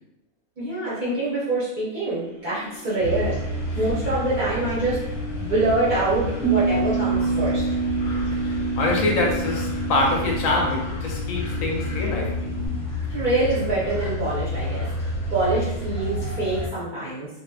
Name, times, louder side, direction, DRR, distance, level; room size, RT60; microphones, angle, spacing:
voice 1, 0.6-5.0 5.4-7.6 13.1-17.3, right 2 dB, 45° right, -10 dB, 0.6 m, -25 dB
sound 1, 2.0-14.1 14.6-14.7, left 5 dB, 25° left, 0.4 m, -40 dB
sound 2, 3.0-16.7, left 1 dB, 90° left, 1.2 m, -30 dB
Bass guitar, 6.4-12.7, right 4 dB, 5° right, 0.8 m, -27 dB
voice 2, 8.3-12.6, left 2 dB, 75° left, -1 dB, 0.9 m, -25 dB
2.7 x 2.3 x 2.2 m, 0.87 s
omnidirectional pair, 1.6 m